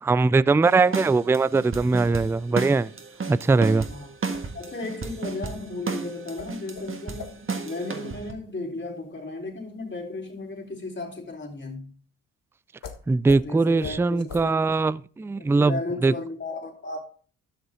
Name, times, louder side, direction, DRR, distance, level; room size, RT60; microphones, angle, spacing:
voice 1, 0.0-2.9 3.3-3.9 13.1-16.1, right 3 dB, 5° right, 0.4 m, -21 dB
sound 1, 0.6-8.3, right 4 dB, 35° right, 1.7 m, -34 dB
sound 2, 1.6-11.7 12.8-13.0 13.3-13.4 13.8-14.0 14.3-14.4, left 6 dB, 60° left, 1.7 m, -45 dB
voice 2, 4.5-11.9 13.4-14.7 15.4-17.0, left 2 dB, 30° left, 4.3 m, -35 dB
12.5 x 6.7 x 3.8 m
hypercardioid pair, 50°, 36 cm